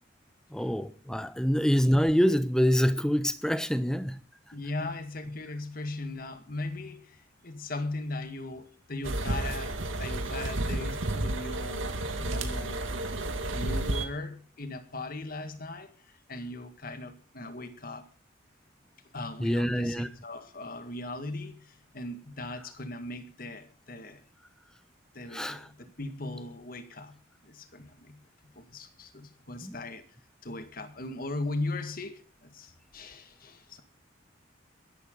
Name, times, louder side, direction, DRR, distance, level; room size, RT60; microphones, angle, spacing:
voice 1, 0.5-4.2 19.4-20.1 25.3-25.7 29.6-29.8, equal, 5° left, 0.8 m, -26 dB
voice 2, 4.5-12.9 13.5-18.1 19.1-24.2 25.1-30.0 30.4-33.8, left 2 dB, 45° left, 1.9 m, -39 dB
sound 1, 9.0-14.1, right 1 dB, 80° right, 2.1 m, -31 dB
22.5 x 11.5 x 3.9 m
head